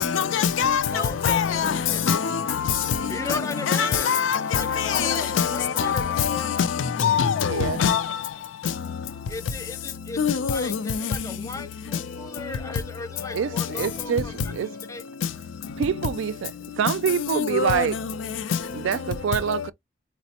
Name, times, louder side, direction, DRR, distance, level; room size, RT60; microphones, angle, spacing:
voice 1, 0.0-0.8 1.2-1.8 2.1-6.7 7.0-8.0 10.2-11.1 17.3-17.9, left 7 dB, 80° left, 0.4 m, -23 dB
voice 2, 0.9-2.0 3.1-4.1 4.5-6.5 9.3-14.3 14.9-15.0, left 3 dB, 15° left, 0.4 m, -36 dB
voice 3, 7.4-7.8 13.3-14.7 15.8-18.0 18.4-19.7, right 7 dB, 80° right, 0.3 m, -26 dB
4.1 x 2.0 x 2.8 m
head